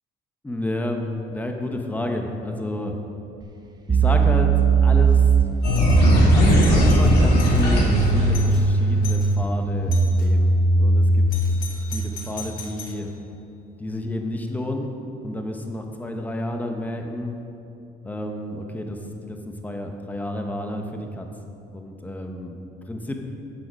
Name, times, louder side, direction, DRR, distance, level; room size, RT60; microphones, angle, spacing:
voice 1, 0.4-2.9 3.9-5.3 6.0-11.3 11.9-13.1 13.8-15.0 15.2-17.4 18.0-21.3 21.7-22.6 22.9-23.2, left 1 dB, 10° left, 3 dB, 0.9 m, -30 dB
sound 1, 3.4-3.5 3.9-11.4, right 3 dB, 25° right, 0.8 m, -19 dB
sound 2, 5.6-8.9, left 1 dB, 70° left, 2.4 m, -19 dB
Doorbell, 5.7-6.0 6.4-7.7 8.0-8.1 8.3-8.6 9.0-9.3 9.9-10.3 11.3-13.0, left 6 dB, 55° left, 1.3 m, -39 dB
8.0 x 6.7 x 6.2 m, 2.7 s
cardioid pair, 110°, 17 cm